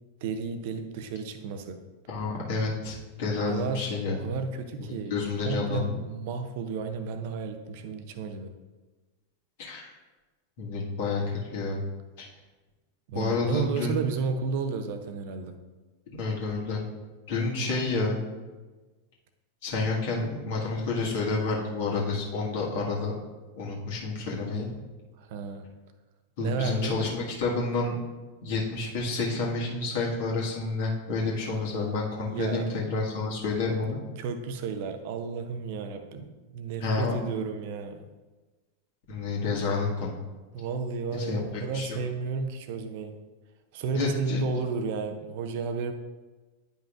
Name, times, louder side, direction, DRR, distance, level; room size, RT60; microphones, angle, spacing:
voice 1, 0.2-1.8 3.5-3.9 4.2-5.2 5.5-8.5 13.1-15.6 25.2-25.7 26.4-27.0 32.2-32.7 34.2-38.1 40.5-43.1 43.7-45.9, right 4 dB, 50° right, 8 dB, 0.7 m, -32 dB
voice 2, 2.1-4.2 4.8-6.0 9.6-9.9 10.6-11.8 12.2-12.3 13.1-14.0 16.2-16.8 17.3-18.2 19.6-23.1 23.6-24.7 26.4-27.9 28.4-34.0 36.8-37.1 39.1-40.2 41.1-41.4 41.7-42.0 43.9-44.4, left 3 dB, 50° left, -3 dB, 1.7 m, -29 dB
10.0 x 5.4 x 2.5 m, 1.2 s
figure-of-eight pair, 90°, 0 cm